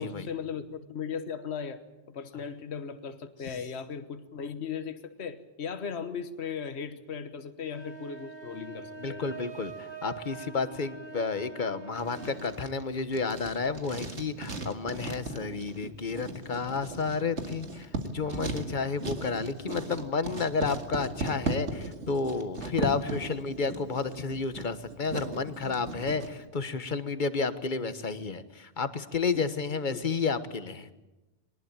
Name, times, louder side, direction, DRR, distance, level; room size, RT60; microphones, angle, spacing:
voice 1, 0.0-9.2 22.8-22.9 29.3-29.5 29.9-30.1, left 6 dB, 70° left, 10 dB, 1.4 m, -37 dB
sound 1, 7.7-12.6, right 4 dB, 35° right, 1.8 m, -44 dB
voice 2, 9.0-30.9, left 4 dB, 45° left, 11 dB, 1.4 m, -31 dB
Writing, 11.9-26.3, right 3 dB, 90° right, 2.4 m, -37 dB
22.5 x 20.0 x 8.9 m, 1.0 s
omnidirectional pair, 1.1 m